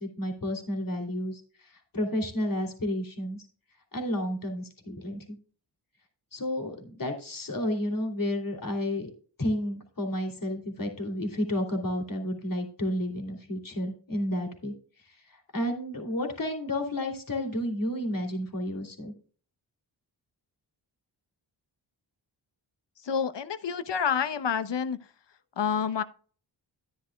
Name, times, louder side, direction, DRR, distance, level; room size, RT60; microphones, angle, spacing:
voice 1, 0.0-1.4 1.9-3.4 3.9-5.4 6.3-9.1 9.4-14.7 15.5-19.1, left 1 dB, 45° left, 3.1 m, -31 dB
voice 2, 23.0-25.0 25.6-26.0, left 7 dB, 60° left, 1.0 m, -28 dB
11.5 x 10.0 x 2.3 m
cardioid pair, 50°, 48 cm